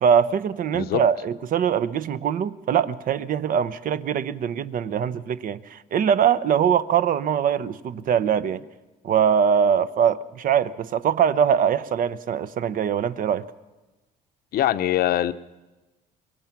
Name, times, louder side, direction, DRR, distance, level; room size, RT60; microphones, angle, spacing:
voice 1, 0.0-8.6 9.0-13.4, right 8 dB, 55° right, 0.9 m, -22 dB
voice 2, 14.5-15.3, left 12 dB, 65° left, 0.8 m, -22 dB
25.5 x 21.5 x 6.0 m
cardioid pair, 110°, 17 cm